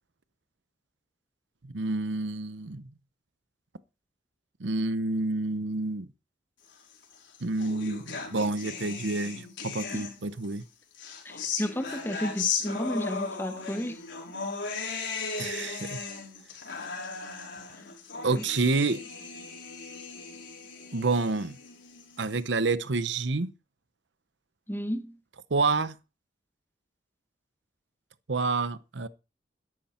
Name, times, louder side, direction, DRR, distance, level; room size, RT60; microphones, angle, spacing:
voice 1, 1.6-2.9 4.6-6.1 7.4-10.6 15.4-16.0 18.2-19.0 20.9-21.6 22.2-23.5 25.5-26.0 28.3-29.1, right 3 dB, 70° right, 0.8 m, -28 dB
sound 1, 7.0-10.5 10.9-22.4, left 5 dB, 85° left, 5.0 m, -37 dB
voice 2, 11.2-14.0 18.3-18.4 24.7-25.1, equal, 10° left, 1.3 m, -32 dB
13.0 x 11.0 x 4.4 m
head